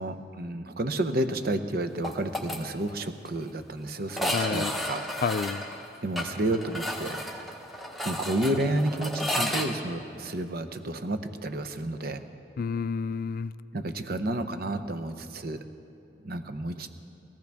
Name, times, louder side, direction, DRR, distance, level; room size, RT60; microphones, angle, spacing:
voice 1, 0.0-5.0 6.0-7.2 8.0-12.2 13.7-15.6 16.2-16.9, right 1 dB, 55° right, 9 dB, 0.8 m, -31 dB
sound 1, 2.0-2.6 2.9-3.0 3.3-3.4 4.1-9.7, left 1 dB, ahead, 1.1 m, -32 dB
voice 2, 4.3-4.7 5.2-5.7 12.6-13.5, left 5 dB, 50° left, 14 dB, 0.3 m, -30 dB
21.5 x 15.0 x 3.5 m, 2.6 s
head